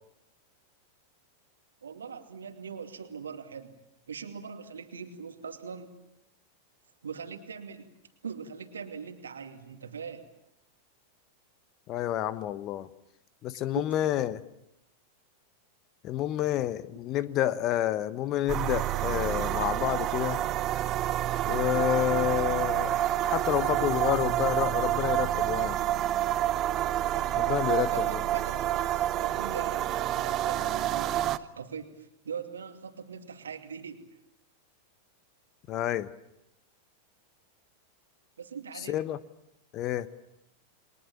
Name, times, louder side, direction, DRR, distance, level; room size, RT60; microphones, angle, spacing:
voice 1, 1.8-5.9 7.0-7.9 8.2-10.3 13.7-13.8 27.6-34.0 38.4-39.0, right 6 dB, 70° right, 6 dB, 2.6 m, -41 dB
voice 2, 11.9-12.9 13.4-14.4 16.0-20.4 21.5-23.0 23.2-25.8 27.4-28.2 35.7-36.1 38.9-39.2 39.7-40.1, left 12 dB, 35° left, 15 dB, 1.2 m, -29 dB
sound 1, 18.5-31.4, right 13 dB, 35° right, 0.9 m, -28 dB
29.5 x 22.5 x 7.3 m, 0.84 s
figure-of-eight pair, 90°, 0 cm